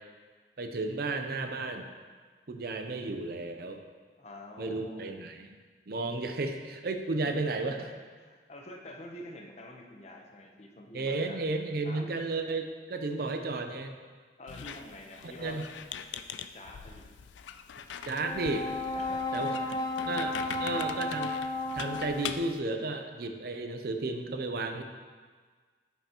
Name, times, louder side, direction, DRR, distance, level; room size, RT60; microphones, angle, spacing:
voice 1, 0.6-1.8 2.5-3.8 4.6-5.6 5.9-7.8 10.9-13.9 15.4-15.6 18.1-18.7 19.3-19.5 20.1-20.3 20.6-21.3 21.7-24.8, right 3 dB, 55° right, 5 dB, 0.6 m, -33 dB
voice 2, 4.2-5.2 7.2-7.3 7.8-11.4 11.8-12.1 14.4-15.6 16.5-17.1 18.9-19.5 19.9-20.3, left 1 dB, 35° left, 1 dB, 0.8 m, -47 dB
Squeak, 14.5-22.6, left 7 dB, 85° left, 0.3 m, -43 dB
Brass instrument, 18.2-22.6, left 2 dB, 20° left, 0.4 m, -33 dB
8.9 x 5.7 x 2.9 m, 1.5 s
head